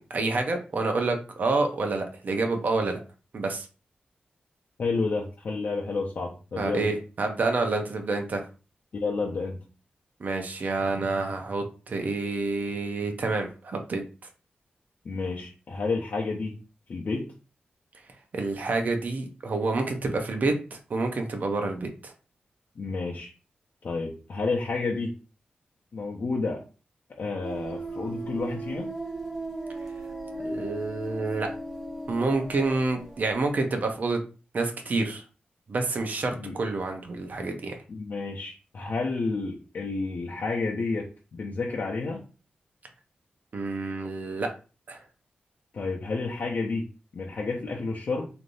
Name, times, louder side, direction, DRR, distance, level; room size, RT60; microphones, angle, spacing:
voice 1, 0.0-3.0 3.3-3.7 6.6-8.4 10.2-14.0 18.3-22.1 30.4-31.5 32.1-34.2 34.5-35.2 35.7-37.8 43.5-44.5 44.9-45.0, right 3 dB, 55° right, 4 dB, 0.7 m, -28 dB
voice 2, 4.8-6.9 8.9-9.6 15.0-16.6 16.9-17.3 22.8-23.3 23.8-25.1 25.9-26.6 27.2-28.9 36.4-36.6 37.9-42.2 45.7-46.9 47.1-48.3, left 3 dB, 60° left, -3 dB, 0.6 m, -30 dB
sound 1, 27.4-33.6, right 2 dB, 5° right, 0.8 m, -37 dB
3.2 x 2.6 x 2.6 m, 0.34 s
wide cardioid pair, 110°, 3 cm